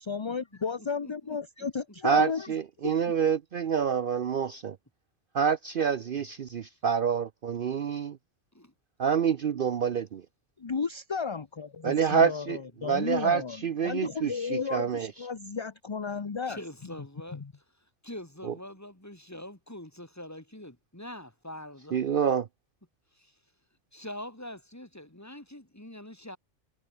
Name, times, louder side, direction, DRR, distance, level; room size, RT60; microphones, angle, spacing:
voice 1, 0.0-2.5 2.8-2.9 10.6-16.6 17.3-17.5, left 5 dB, 30° left, 0.6 m, -33 dB
voice 2, 0.8-1.4 2.5-2.6 8.5-8.7 16.5-17.4 17.7-22.0 23.1-23.4 23.9-26.4, left 1 dB, 15° left, 2.5 m, -44 dB
voice 3, 2.0-4.8 5.3-8.2 9.0-10.2 11.8-15.1 18.4-18.5 21.9-22.5, right 7 dB, 50° right, 0.8 m, -27 dB
omnidirectional pair, 1.3 m